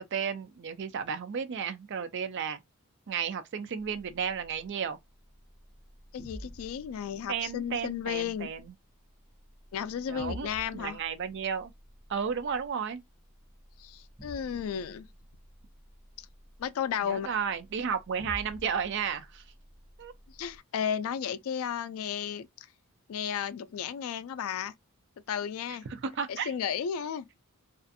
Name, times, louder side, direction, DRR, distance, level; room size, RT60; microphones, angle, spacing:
voice 1, 0.0-2.6 3.1-5.0 7.3-8.7 10.1-11.7 12.1-13.0 17.0-19.4 20.0-20.1 25.9-26.5, right 7 dB, 55° right, 0.4 m, -33 dB
sound 1, 3.8-20.6, left 1 dB, 5° left, 0.9 m, -51 dB
voice 2, 6.1-8.5 9.7-11.0 13.8-15.1 16.2-16.3 16.6-17.3 20.4-22.7 23.1-24.7 25.3-25.9 26.3-27.3, left 8 dB, 70° left, 0.3 m, -33 dB
2.4 x 2.4 x 2.6 m
head